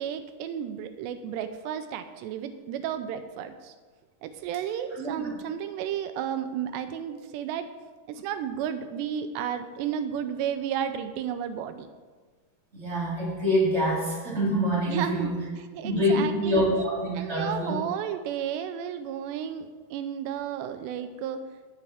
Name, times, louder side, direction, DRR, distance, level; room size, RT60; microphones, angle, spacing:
voice 1, 0.0-3.7 4.2-7.7 8.1-11.9 14.9-16.7 17.1-21.4, right 9 dB, 85° right, 9 dB, 2.8 m, -33 dB
voice 2, 5.0-5.3 12.7-15.4 15.8-17.7, equal, 25° right, -5 dB, 1.5 m, -26 dB
17.0 x 7.4 x 3.5 m, 1.4 s
omnidirectional pair, 4.9 m